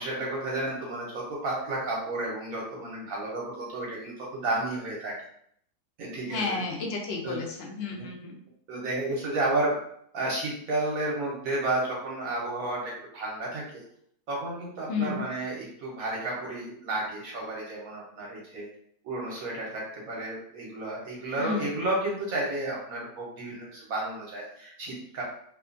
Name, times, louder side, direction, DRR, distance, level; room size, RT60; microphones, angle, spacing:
voice 1, 0.0-5.1 6.0-6.6 7.2-7.4 7.9-8.1 8.7-9.8 10.1-13.8 14.3-18.7 19.0-25.2, right 2 dB, 65° right, -4 dB, 1.1 m, -32 dB
voice 2, 6.3-8.4 14.9-15.2 21.4-21.7, left 4 dB, 60° left, -1 dB, 0.8 m, -32 dB
2.8 x 2.3 x 2.4 m, 0.66 s
omnidirectional pair, 1.6 m